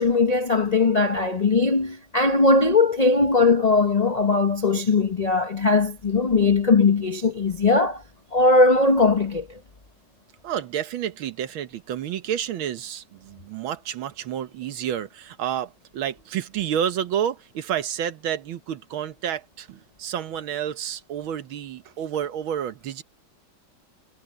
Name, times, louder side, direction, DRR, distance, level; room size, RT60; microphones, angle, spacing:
voice 1, 0.0-8.0 8.3-9.6, left 3 dB, 45° left, 0.4 m, -19 dB
voice 2, 10.4-23.0, right 9 dB, 90° right, 1.9 m, -30 dB
omnidirectional pair, 2.2 m